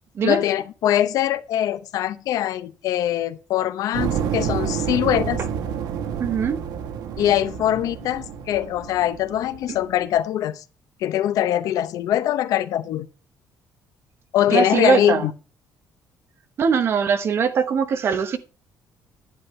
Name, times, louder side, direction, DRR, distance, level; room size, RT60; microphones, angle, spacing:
voice 1, 0.2-5.4 7.2-10.6 11.0-13.1 14.3-15.3, left 12 dB, 65° left, 0.6 m, -22 dB
sound 1, 3.9-10.2, right 8 dB, 80° right, 1.1 m, -29 dB
voice 2, 6.2-6.6 14.5-15.3 16.6-18.4, right 6 dB, 40° right, 1.0 m, -21 dB
10.5 x 9.5 x 3.2 m
cardioid pair, 180°, 7 cm